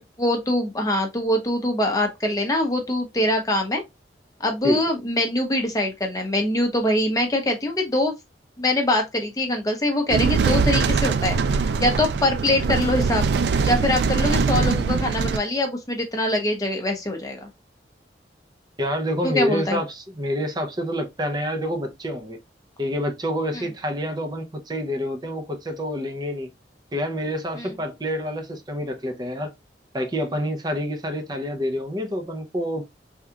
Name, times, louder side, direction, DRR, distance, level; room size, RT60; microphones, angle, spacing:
voice 1, 0.2-3.8 4.4-8.1 8.6-11.4 11.8-13.3 13.6-17.5 19.2-19.8 23.5-23.6 27.6-27.7, left 1 dB, 20° left, 0.7 m, -23 dB
sound 1, 10.1-15.4, right 4 dB, 65° right, 0.3 m, -22 dB
voice 2, 18.8-22.4 22.8-26.5 26.9-29.5 29.9-32.8, equal, 25° right, 0.6 m, -27 dB
3.5 x 2.3 x 2.8 m
head